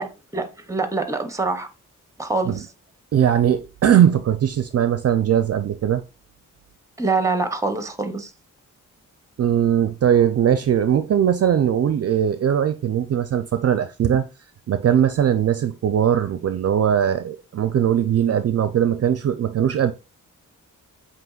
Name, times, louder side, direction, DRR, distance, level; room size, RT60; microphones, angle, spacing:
voice 1, 0.0-1.7 2.2-2.7 7.0-8.3, right 3 dB, 10° right, 0.7 m, -25 dB
voice 2, 3.1-6.0 9.4-14.3 14.7-19.9, right 9 dB, 50° right, 0.4 m, -20 dB
7.7 x 2.9 x 2.3 m
cardioid pair, 90°, 32 cm